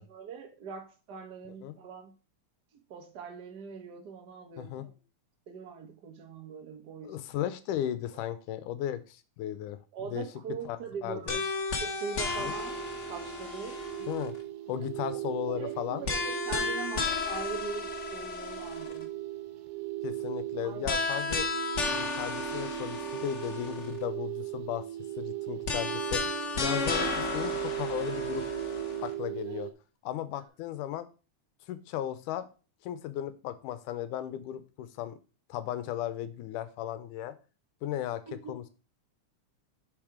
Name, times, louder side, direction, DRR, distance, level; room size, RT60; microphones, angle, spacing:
voice 1, 0.0-2.1 2.9-4.9 5.5-7.2 9.9-11.5 11.8-12.8 13.1-13.8 14.8-14.9 15.3-19.1 20.6-21.0 29.5-29.7 38.3-38.7, right 6 dB, 45° right, 3 dB, 1.5 m, -42 dB
voice 2, 7.0-9.8 10.1-10.3 10.7-11.4 12.4-12.5 14.0-14.3 14.7-16.0 20.0-21.5 21.9-24.9 25.2-26.3 26.6-28.4 29.0-29.7 30.0-31.1 31.7-32.5 32.8-35.2 35.5-37.4 37.8-38.2 38.5-38.7, left 12 dB, 85° left, 13 dB, 2.3 m, -35 dB
sound 1, 11.3-14.4 16.0-19.0 20.8-24.0 25.6-29.1, left 4 dB, 65° left, 0.7 m, -33 dB
sound 2, 12.5-29.7, right 15 dB, 80° right, 2.4 m, -38 dB
7.3 x 5.3 x 4.9 m, 0.33 s
omnidirectional pair, 3.6 m